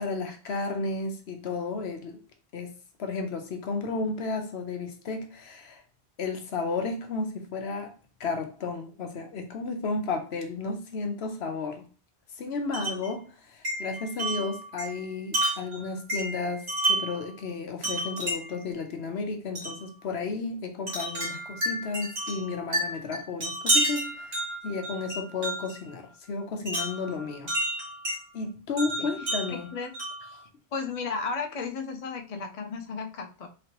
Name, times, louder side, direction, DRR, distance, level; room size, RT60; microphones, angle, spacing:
voice 1, 0.0-2.2 2.5-2.7 3.0-5.8 6.2-7.9 8.2-11.9 12.4-24.3 24.6-26.0 26.3-27.5 28.3-29.7, left 3 dB, 75° left, 1.0 m, -33 dB
Wind chime, 12.7-13.1 13.6-17.2 17.8-18.7 19.5-19.8 20.9-25.8 26.7-28.2 28.8-30.3, right 1 dB, 75° right, 2.1 m, -30 dB
voice 2, 29.0-30.0 30.7-33.5, left 4 dB, 45° left, 0.5 m, -34 dB
3.8 x 3.2 x 2.9 m
omnidirectional pair, 1.1 m